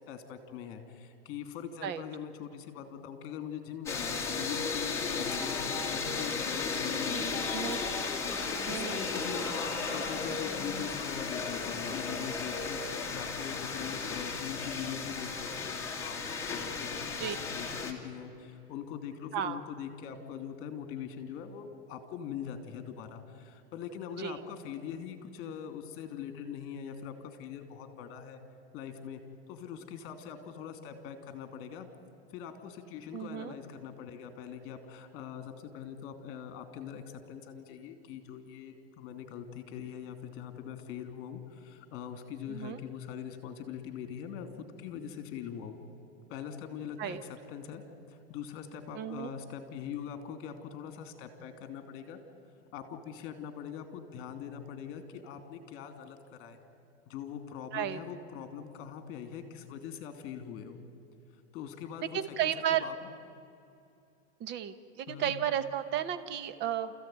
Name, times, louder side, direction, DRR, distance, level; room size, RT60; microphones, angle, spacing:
voice 1, 0.1-7.8 8.5-28.4 28.7-29.2 29.5-31.9 32.3-45.8 46.3-47.8 48.1-52.2 52.7-56.6 57.1-60.8 61.5-62.5 62.8-62.9 65.1-65.3, left 8 dB, 35° left, 7 dB, 2.9 m, -42 dB
sound 1, 3.9-17.9, left 4 dB, 5° left, 2.4 m, -34 dB
voice 2, 7.5-7.8 8.7-9.0 17.2-17.4 19.3-19.6 24.2-24.3 33.1-33.6 42.5-42.8 47.0-47.2 48.9-49.3 57.7-58.0 62.1-62.8 64.4-66.9, right 10 dB, 30° right, 12 dB, 1.0 m, -33 dB
29.0 x 15.0 x 9.2 m, 2.6 s
supercardioid pair, 140°, 36 cm